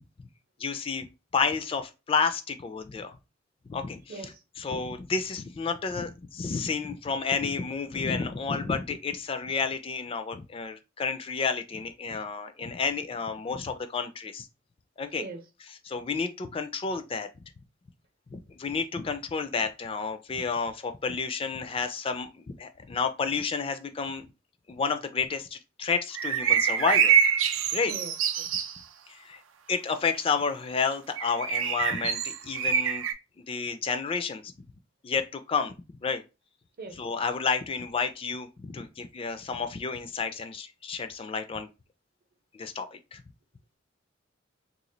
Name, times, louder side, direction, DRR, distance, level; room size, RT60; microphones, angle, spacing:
voice 1, 0.6-1.1 1.3-3.2 3.7-4.0 4.6-14.5 15.0-15.2 15.9-17.3 18.3-24.3 24.7-27.2 27.7-27.9 29.1-29.4 29.7-33.0 33.5-34.5 35.0-35.7 36.0-36.2 37.0-41.7 42.5-43.2, left 5 dB, 30° left, 0.3 m, -30 dB
voice 2, 4.1-4.4 15.2-15.4 27.9-28.5 36.8-37.0, right 3 dB, 50° right, 0.7 m, -41 dB
sound 1, 26.1-28.8 31.2-33.1, right 8 dB, 90° right, 0.5 m, -25 dB
3.0 x 2.3 x 3.8 m
head